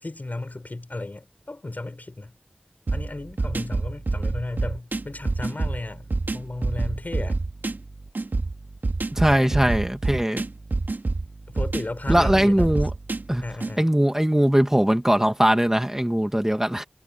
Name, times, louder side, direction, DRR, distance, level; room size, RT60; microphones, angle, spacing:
voice 1, 0.0-2.3 2.9-7.4 9.3-9.9 11.5-12.7 13.4-13.9, left 2 dB, 60° left, 5.3 m, -34 dB
sound 1, 2.9-13.7, right 3 dB, 85° right, 2.6 m, -28 dB
voice 2, 9.1-10.4 12.1-12.9 13.3-13.4 13.8-16.8, equal, 15° right, 2.2 m, -20 dB
wide cardioid pair, 40°, 3 cm